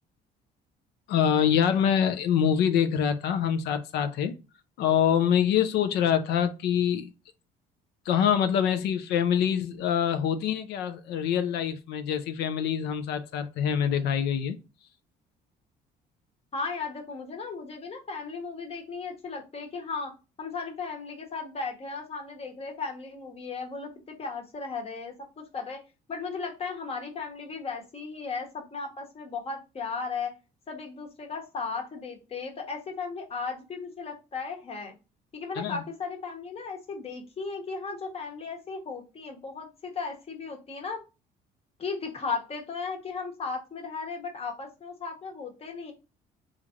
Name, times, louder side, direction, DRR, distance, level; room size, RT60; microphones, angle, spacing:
voice 1, 1.1-4.3 4.8-7.1 8.1-14.6 35.6-35.8, left 8 dB, 80° left, 0.5 m, -25 dB
voice 2, 16.5-20.1 20.4-23.9 24.2-25.8 26.1-30.3 30.7-35.0 35.3-41.0 41.8-45.9, left 4 dB, 35° left, 1.1 m, -36 dB
3.1 x 2.5 x 3.7 m
cardioid pair, 110°, 17 cm